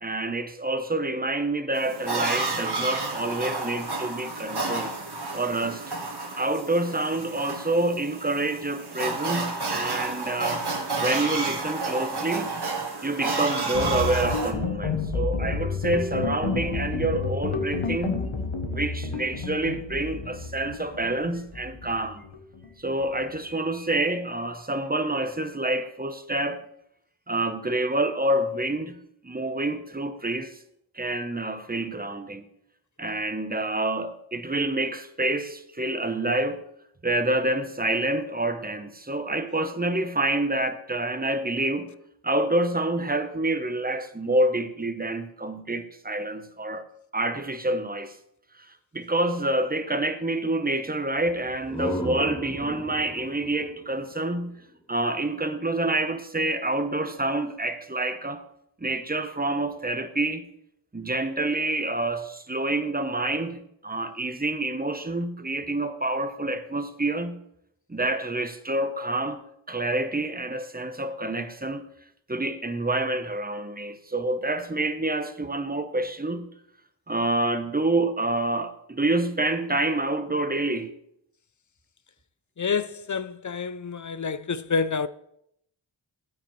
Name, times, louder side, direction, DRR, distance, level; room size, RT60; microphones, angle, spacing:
voice 1, 0.0-4.9 5.3-5.8 6.4-10.7 11.0-12.5 13.0-18.2 18.7-22.2 22.8-26.6 27.3-29.0 29.2-30.6 30.9-32.4 33.0-36.6 37.0-41.9 42.2-46.9 47.1-48.2 48.9-54.5 54.9-58.4 58.8-60.5 60.9-67.4 67.9-69.4 69.7-71.9 72.3-76.5 77.1-80.9, right 2 dB, 20° right, 0.9 m, -27 dB
sound 1, 1.7-14.5, right 3 dB, 55° right, 1.6 m, -31 dB
sound 2, 13.7-23.2, left 4 dB, 80° left, 1.1 m, -30 dB
sound 3, 51.4-55.1, equal, 10° left, 1.3 m, -35 dB
voice 2, 82.6-85.1, left 5 dB, 40° left, 0.5 m, -28 dB
12.0 x 8.6 x 3.1 m
wide cardioid pair, 45°, 46 cm